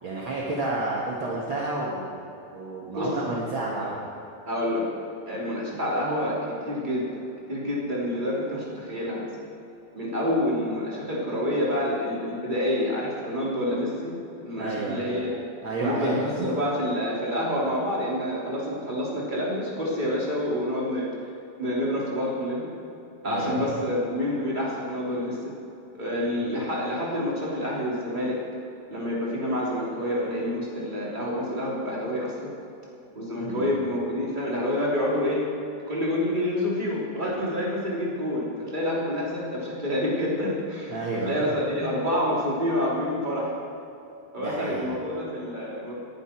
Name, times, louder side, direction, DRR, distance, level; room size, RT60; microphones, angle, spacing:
voice 1, 0.0-2.2 2.5-4.1 14.6-15.2 15.6-16.6 23.3-23.6 33.4-33.7 40.9-41.5 41.8-42.0 44.4-45.0, right 2 dB, 50° right, -4 dB, 1.6 m, -31 dB
voice 2, 4.5-5.0 5.3-6.4 6.6-7.2 7.5-9.3 9.9-14.1 14.4-15.4 15.8-21.1 21.6-22.6 23.2-25.4 25.9-28.4 28.9-32.5 33.1-35.5 35.9-43.5 44.3-45.9, left 1 dB, 15° right, -5 dB, 3.1 m, -28 dB
20.5 x 11.0 x 4.6 m, 2.8 s
omnidirectional pair, 4.3 m